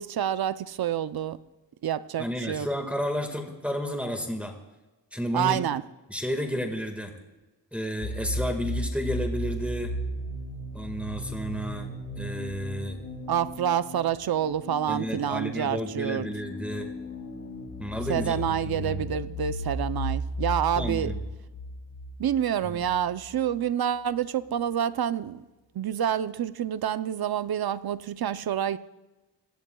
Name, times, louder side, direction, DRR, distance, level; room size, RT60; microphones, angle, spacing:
voice 1, 0.0-1.4 1.8-2.7 5.3-5.8 13.3-16.3 18.1-21.1 22.2-25.4 25.7-28.8, right 9 dB, 55° right, 0.7 m, -28 dB
voice 2, 2.2-4.5 5.1-5.6 6.1-7.1 7.7-9.9 10.7-13.0 14.9-16.9 17.8-19.1 20.7-21.2 22.6-22.8, equal, 5° right, 1.8 m, -32 dB
sound 1, 8.0-23.6, equal, 75° left, 3.0 m, -35 dB
22.5 x 16.5 x 2.3 m
cardioid pair, 80°, 44 cm